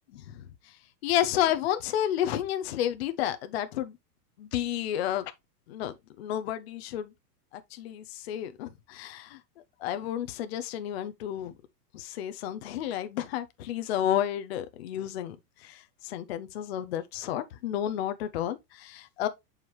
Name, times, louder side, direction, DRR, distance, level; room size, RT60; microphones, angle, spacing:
voice 1, 1.0-3.9 4.4-5.3 5.7-7.1 7.7-9.4 9.8-11.5 11.9-15.4 15.6-19.3, left 11 dB, 40° left, 0.5 m, -31 dB
7.1 x 4.8 x 3.0 m
supercardioid pair, 175°, 50 cm